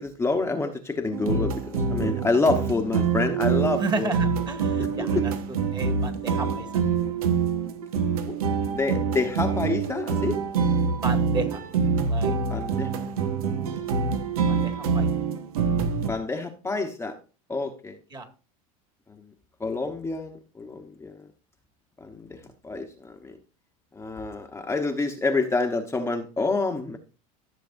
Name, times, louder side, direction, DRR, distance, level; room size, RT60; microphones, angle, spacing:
voice 1, 0.0-4.1 4.8-5.3 8.2-8.4 8.7-10.4 12.5-12.9 16.0-17.2 17.5-18.0 19.6-21.3 22.0-23.4 23.9-27.0, left 3 dB, 15° left, 4 dB, 1.1 m, -28 dB
sound 1, 1.1-16.1, right 5 dB, 90° right, 1.3 m, -26 dB
voice 2, 3.7-6.7 11.0-11.6 12.0-12.8 14.5-15.1 18.1-18.3, right 3 dB, 25° right, 6 dB, 2.0 m, -33 dB
14.0 x 6.8 x 2.6 m, 0.34 s
supercardioid pair, 100°, 18 cm